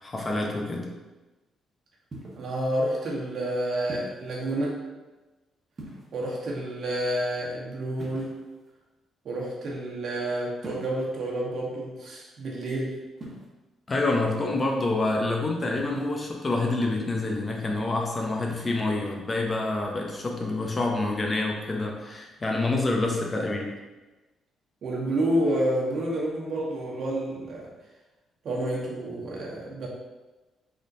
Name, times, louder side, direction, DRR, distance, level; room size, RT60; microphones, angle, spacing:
voice 1, 0.0-0.9 13.9-23.7, left 2 dB, 30° left, 1 dB, 0.7 m, -27 dB
sound 1, 2.1-2.5 3.9-4.3 5.7-6.4 8.0-8.7 10.6-11.1 13.2-13.4 15.8-16.3 18.4-18.8, right 1 dB, 35° right, 1.1 m, -43 dB
voice 2, 2.4-4.8 6.1-8.4 9.2-13.0 23.3-23.5 24.8-27.7 28.4-29.9, right 1 dB, 60° right, -3 dB, 1.1 m, -29 dB
3.9 x 3.6 x 2.7 m, 1.1 s
cardioid pair, 90°, 0 cm